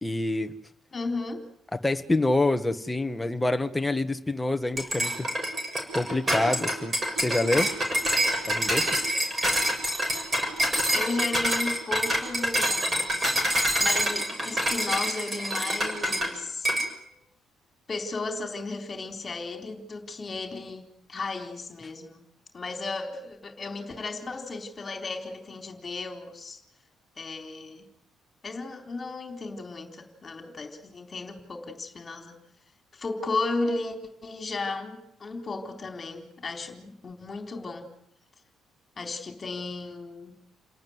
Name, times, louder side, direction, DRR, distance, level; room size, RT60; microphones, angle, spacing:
voice 1, 0.0-0.5 1.8-5.3 5.9-7.0 7.2-7.7 8.4-9.0, left 2 dB, 10° left, 7 dB, 1.5 m, -26 dB
voice 2, 0.9-1.4 10.9-13.1 13.8-16.7 17.9-22.2 22.5-26.6 27.2-27.9 28.4-32.4 32.9-34.0 34.2-37.9 39.0-40.3, left 3 dB, 25° left, 5 dB, 3.9 m, -34 dB
sound 1, 4.8-16.3 16.7-16.9, equal, 20° right, 7.3 m, -26 dB
29.0 x 18.5 x 9.6 m, 0.75 s
cardioid pair, 160°, 0 cm